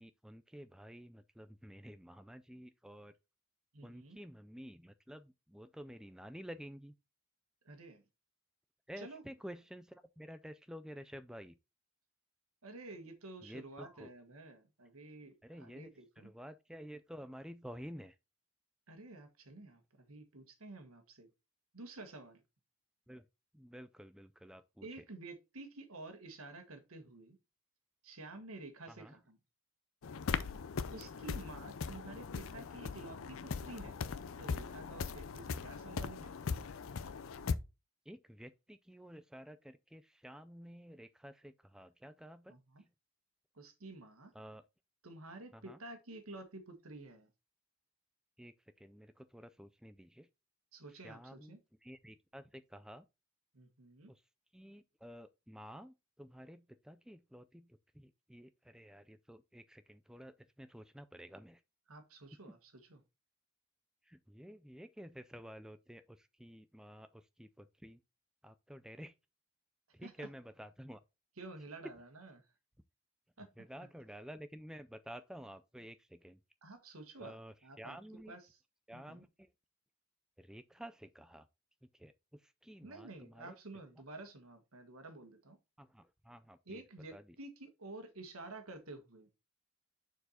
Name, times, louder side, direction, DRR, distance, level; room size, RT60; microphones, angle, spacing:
voice 1, 0.0-3.1 3.8-6.9 8.9-11.6 13.4-14.1 15.4-18.2 23.1-23.3 23.5-24.9 28.9-29.2 30.5-30.6 31.3-31.4 38.1-42.9 44.3-44.6 45.5-45.8 48.4-50.3 50.9-53.1 54.1-54.2 54.5-61.6 62.5-62.6 64.0-68.0 68.4-69.1 69.9-71.0 71.8-71.9 73.6-76.4 77.2-78.4 78.9-79.5 80.4-81.5 81.9-83.6 85.8-86.8 87.1-87.4, equal, 5° right, 0.3 m, -51 dB
voice 2, 3.7-4.2 7.6-8.0 9.0-9.2 12.6-16.3 18.9-21.3 21.7-22.4 24.8-27.4 28.0-29.4 30.9-34.0 34.4-36.3 42.5-42.8 43.5-44.3 45.0-47.3 50.7-51.6 53.5-54.1 61.9-63.0 70.0-70.3 71.4-72.5 73.4-73.5 76.6-78.0 78.3-78.6 78.9-79.2 82.8-85.6 86.7-89.3, right 2 dB, 85° right, 1.5 m, -51 dB
sound 1, 30.0-37.5, left 5 dB, 70° left, 0.5 m, -40 dB
6.7 x 4.6 x 4.2 m
head